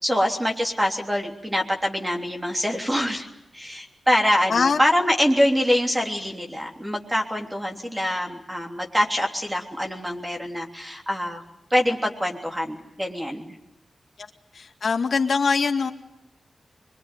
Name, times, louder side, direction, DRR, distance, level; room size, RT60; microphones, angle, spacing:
voice 1, 0.0-3.3 3.5-11.4 11.7-13.6, equal, 10° right, 2 dB, 3.3 m, -24 dB
voice 2, 4.5-4.8 14.5-15.9, left 5 dB, 65° left, 5 dB, 2.0 m, -22 dB
25.0 x 23.5 x 9.4 m, 0.83 s
wide cardioid pair, 135°, 0 cm